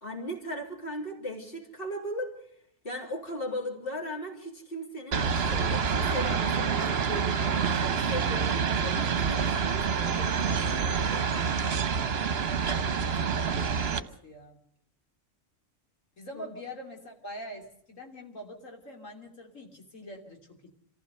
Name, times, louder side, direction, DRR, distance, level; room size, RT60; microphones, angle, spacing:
voice 1, 0.0-2.3 2.8-7.4 7.7-11.3 16.3-16.5, equal, 45° left, 2 dB, 3.7 m, -37 dB
sound 1, 5.1-14.0, right 6 dB, 55° right, 1.2 m, -27 dB
voice 2, 12.8-14.6 16.2-20.7, equal, 85° left, 1 dB, 3.5 m, -44 dB
27.5 x 15.0 x 6.7 m, 0.69 s
omnidirectional pair, 1.3 m